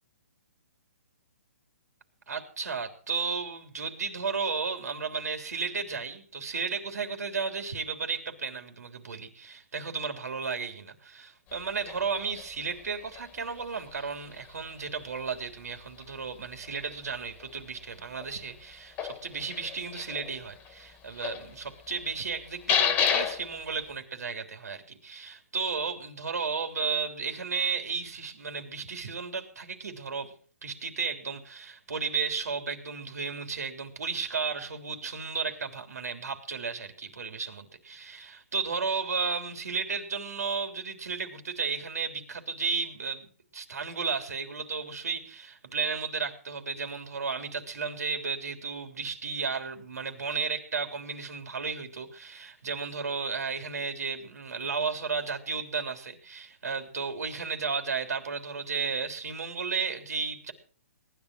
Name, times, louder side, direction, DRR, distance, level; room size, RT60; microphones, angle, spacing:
voice 1, 2.3-30.3 30.6-43.3 43.5-60.5, right 5 dB, 85° right, 6 dB, 3.4 m, -33 dB
sound 1, 11.5-23.9, left 8 dB, 20° left, 1.7 m, -35 dB
19.0 x 11.0 x 6.2 m, 0.43 s
hypercardioid pair, 155°, 8 cm